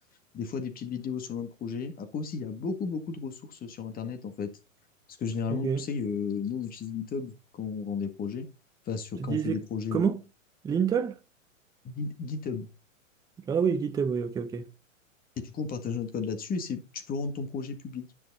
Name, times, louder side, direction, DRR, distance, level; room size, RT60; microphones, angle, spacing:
voice 1, 0.3-4.5 5.2-8.5 8.9-10.1 11.8-12.7 15.4-18.1, left 5 dB, 20° left, 1.8 m, -34 dB
voice 2, 5.5-5.9 9.2-9.6 9.9-10.2 10.6-11.2 13.5-14.7, right 7 dB, 10° right, 0.6 m, -27 dB
10.5 x 6.3 x 4.2 m
hypercardioid pair, 120°, 40 cm